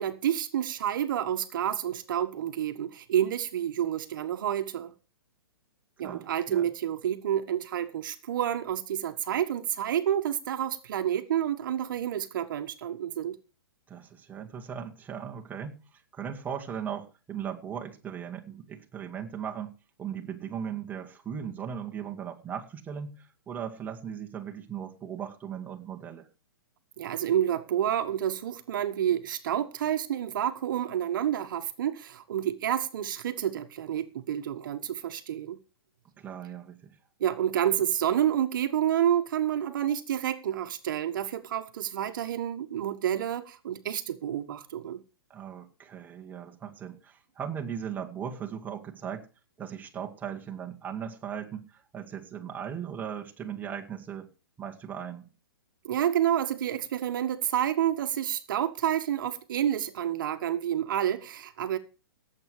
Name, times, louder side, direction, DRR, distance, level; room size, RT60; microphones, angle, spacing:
voice 1, 0.0-4.9 6.0-13.4 27.0-35.6 37.2-45.0 55.8-61.8, right 10 dB, 60° right, 1.5 m, -29 dB
voice 2, 6.0-6.7 13.9-19.7 20.0-26.3 36.2-37.0 45.3-49.3 49.6-54.3 54.6-55.2, right 8 dB, 15° right, 2.1 m, -38 dB
17.5 x 8.1 x 4.9 m
hypercardioid pair, 140°, 12 cm